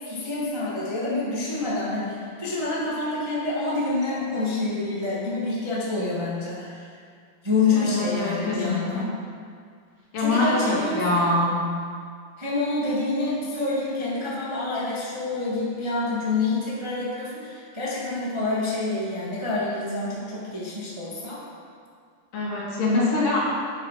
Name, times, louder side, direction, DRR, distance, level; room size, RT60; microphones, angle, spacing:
voice 1, 0.0-7.0 7.4-9.1 10.2-11.3 12.4-21.4, left 3 dB, 40° right, -7 dB, 0.4 m, -27 dB
voice 2, 7.8-9.1 10.1-11.6 22.3-23.4, left 2 dB, 55° left, -6 dB, 4.0 m, -24 dB
10.0 x 9.7 x 5.9 m, 2.1 s
omnidirectional pair, 4.9 m